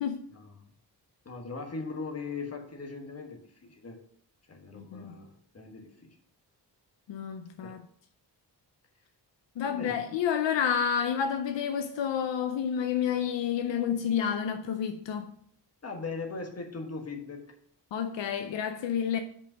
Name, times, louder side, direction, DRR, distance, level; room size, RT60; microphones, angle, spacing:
voice 1, 0.3-0.7 1.2-4.0 4.5-6.1 7.6-7.7 9.6-10.0 15.8-17.5, left 4 dB, 35° left, 1.4 m, -39 dB
voice 2, 4.7-5.2 7.1-7.8 9.6-15.4 17.9-19.2, left 8 dB, 85° left, 0.6 m, -30 dB
5.4 x 5.1 x 6.1 m
wide cardioid pair, 135°, 43 cm